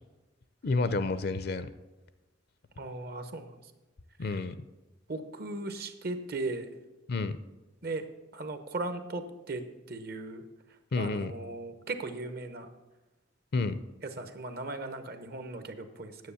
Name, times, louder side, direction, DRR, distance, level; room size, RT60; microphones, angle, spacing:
voice 1, 0.6-1.7 4.2-4.6 7.1-7.4 10.9-11.3 13.5-13.8, left 3 dB, 50° left, 12 dB, 0.5 m, -29 dB
voice 2, 2.8-3.6 5.1-6.7 7.8-8.1 8.3-10.4 11.0-12.7 14.2-16.3, right 2 dB, 50° right, 9 dB, 0.9 m, -37 dB
9.5 x 7.3 x 7.0 m, 1.1 s
head